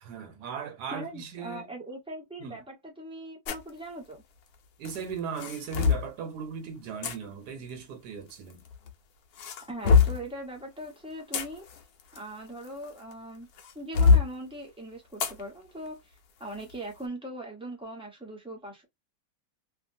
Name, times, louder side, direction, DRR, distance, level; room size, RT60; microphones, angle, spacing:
voice 1, 0.0-1.7 2.4-2.6 4.8-8.6, right 6 dB, 70° right, 1.3 m, -38 dB
voice 2, 0.9-4.2 9.6-11.6 12.1-13.5 13.7-16.1 16.4-18.8, right 1 dB, 5° right, 0.7 m, -40 dB
sound 1, 3.5-3.7 4.8-6.1 7.0-7.2 8.3-8.9 9.4-10.3 11.0-13.1 13.6-14.3 15.2-15.4 15.9-16.0 16.5-16.7, left 5 dB, 70° left, 1.1 m, -24 dB
2.8 x 2.6 x 2.6 m
omnidirectional pair, 1.8 m